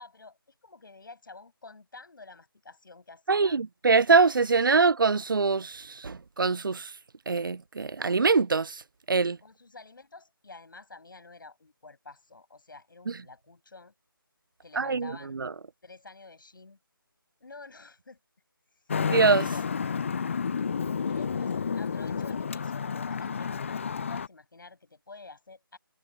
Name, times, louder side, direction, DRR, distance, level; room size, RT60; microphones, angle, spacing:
voice 1, 0.0-3.6 4.6-4.7 9.4-13.9 14.6-15.4 15.8-16.8 17.4-18.2 19.4-19.8 21.1-25.8, left 3 dB, 60° left, 8.0 m, -49 dB
voice 2, 3.3-6.9 7.3-8.8 9.1-9.4 13.1-13.2 14.8-15.5 19.0-19.5, right 4 dB, 60° right, 0.6 m, -24 dB
Traffic noise roadway noise, 18.9-24.3, left 6 dB, 35° left, 0.5 m, -30 dB
figure-of-eight pair, 155°, 12 cm